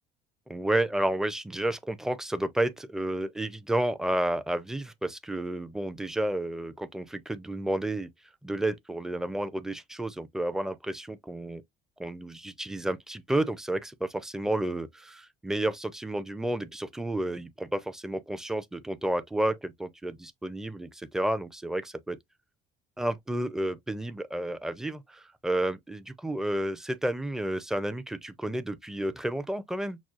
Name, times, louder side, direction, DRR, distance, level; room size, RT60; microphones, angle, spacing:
voice 1, 0.5-8.1 8.4-11.6 12.0-22.2 23.0-30.0, right 1 dB, 5° right, 0.5 m, -31 dB
6.0 x 2.3 x 2.4 m
cardioid pair, 120°, 18 cm